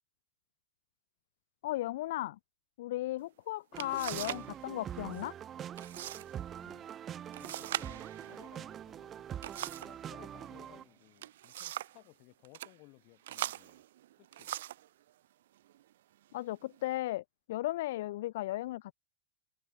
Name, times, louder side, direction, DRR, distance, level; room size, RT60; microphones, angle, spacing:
voice 1, 1.6-2.4 2.8-5.3 16.3-18.9, left 16 dB, 60° left, 0.4 m, -36 dB
sound 1, 3.3-3.4 3.8-4.5 4.8-5.3 5.8-6.3 6.6-6.7 7.3-10.0 11.0-12.0 12.4-12.7 13.2-14.9 15.7-15.8 16.4-16.9, right 13 dB, 80° right, 0.4 m, -41 dB
sound 2, 3.7-10.9, right 9 dB, 20° right, 0.7 m, -44 dB
voice 2, 6.6-6.9 7.3-9.2 9.5-13.8 14.2-14.6, left 31 dB, 35° left, 4.1 m, -60 dB
open air
supercardioid pair, 180°, 0 cm